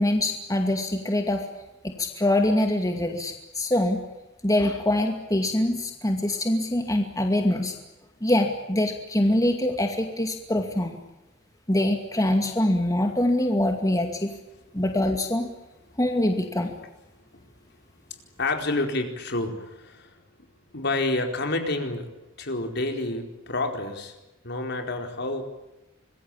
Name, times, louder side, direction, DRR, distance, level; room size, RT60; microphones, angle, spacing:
voice 1, 0.0-1.5 1.8-4.0 4.4-7.7 8.2-11.0 11.7-14.3 14.7-15.5 16.0-16.7, left 1 dB, 20° left, 4 dB, 2.3 m, -24 dB
voice 2, 18.4-20.1 20.7-22.1 22.4-24.1 24.4-25.4, left 2 dB, 60° left, 5 dB, 4.6 m, -28 dB
26.0 x 21.5 x 8.8 m, 0.98 s
head